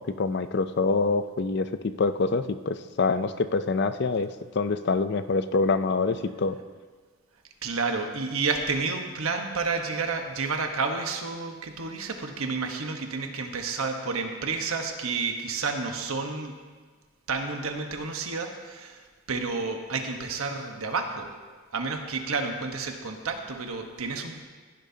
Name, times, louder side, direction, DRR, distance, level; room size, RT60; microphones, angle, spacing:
voice 1, 0.2-4.3 4.5-6.6, left 4 dB, 50° left, 11 dB, 0.4 m, -25 dB
voice 2, 7.6-16.5 17.3-21.3 21.7-24.4, right 4 dB, 85° right, 4 dB, 1.1 m, -30 dB
15.5 x 10.5 x 2.8 m, 1.5 s
head